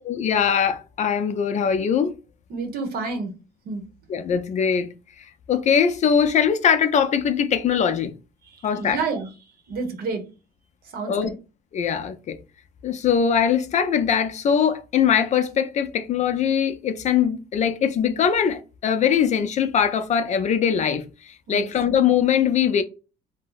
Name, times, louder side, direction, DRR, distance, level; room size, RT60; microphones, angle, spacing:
voice 1, 0.1-2.1 4.1-4.9 5.5-8.1 8.6-9.0 11.1-11.3 11.7-12.4 12.8-21.1 21.5-22.8, left 7 dB, 45° left, 0.4 m, -21 dB
voice 2, 2.5-3.3 3.7-3.8 8.4-9.3 9.7-10.2 10.9-11.3 21.5-21.7, right 4 dB, 65° right, 1.0 m, -29 dB
2.6 x 2.0 x 3.8 m
cardioid pair, 110°, 17 cm